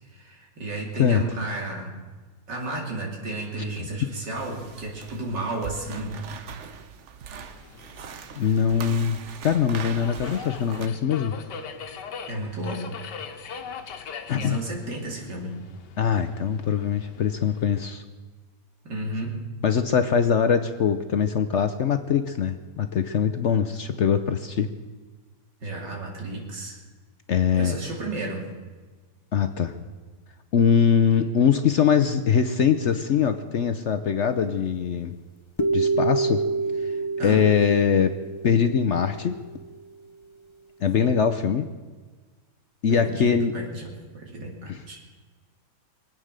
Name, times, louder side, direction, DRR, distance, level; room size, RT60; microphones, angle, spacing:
voice 1, 0.0-2.0 2.5-6.2 12.3-13.0 14.3-15.5 18.9-19.4 25.6-26.8 27.5-28.5 37.2-37.4 42.9-45.0, right 2 dB, 85° right, -1 dB, 3.4 m, -33 dB
sound 1, 4.3-10.9, right 7 dB, 50° right, 1.0 m, -41 dB
Subway metro underground, 7.3-17.9, left 6 dB, 90° left, 1.7 m, -42 dB
voice 2, 8.4-11.4 14.3-14.6 16.0-18.0 19.6-24.7 27.3-27.7 29.3-29.7 30.5-35.1 35.7-36.4 36.8-36.9 37.2-38.1 38.4-39.4 40.8-41.7 42.8-43.5 44.7-44.8, left 7 dB, 60° left, 9 dB, 0.8 m, -22 dB
sound 2, 35.6-39.6, right 3 dB, 30° left, 0.6 m, -27 dB
23.0 x 9.0 x 6.5 m, 1.4 s
omnidirectional pair, 1.8 m